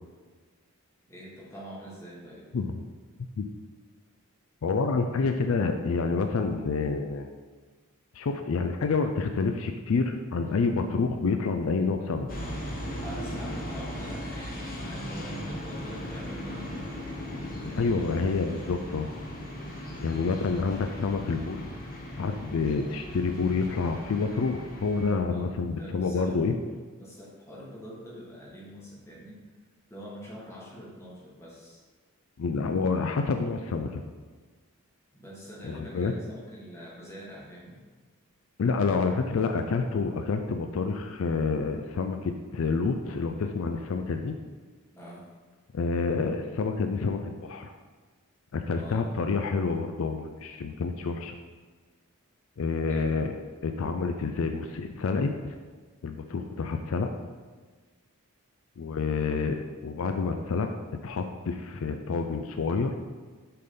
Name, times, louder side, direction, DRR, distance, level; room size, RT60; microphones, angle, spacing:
voice 1, 1.1-2.5 13.0-17.1 22.7-22.9 25.3-26.6 27.0-29.4 29.9-31.8 35.1-37.8 44.9-45.3 48.8-49.0 52.9-53.1, equal, 10° left, -5 dB, 1.5 m, -45 dB
voice 2, 4.6-7.3 8.1-12.3 17.6-19.1 20.0-21.7 22.2-26.5 32.4-34.0 35.6-36.1 38.6-44.3 45.7-47.7 48.5-51.4 52.6-53.3 53.6-55.6 56.0-57.1 58.8-60.7 61.0-62.9, left 4 dB, 65° left, 6 dB, 0.4 m, -28 dB
sound 1, 12.3-25.1, equal, 40° left, 1.1 m, -38 dB
6.7 x 3.8 x 5.2 m, 1.4 s
head